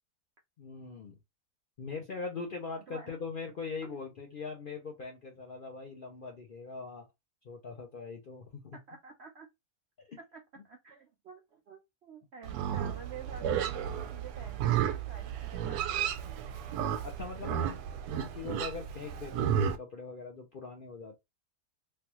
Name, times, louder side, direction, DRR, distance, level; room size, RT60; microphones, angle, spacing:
voice 1, 0.6-1.2 1.8-7.1 7.4-8.8 10.0-10.2 17.0-17.8 18.1-21.2, left 4 dB, 55° left, 0.5 m, -41 dB
voice 2, 8.7-9.5 10.3-16.5, right 6 dB, 65° right, 0.6 m, -49 dB
Livestock farm animals working animals, 12.4-19.8, right 9 dB, 90° right, 1.1 m, -33 dB
3.3 x 2.3 x 2.9 m
omnidirectional pair, 1.6 m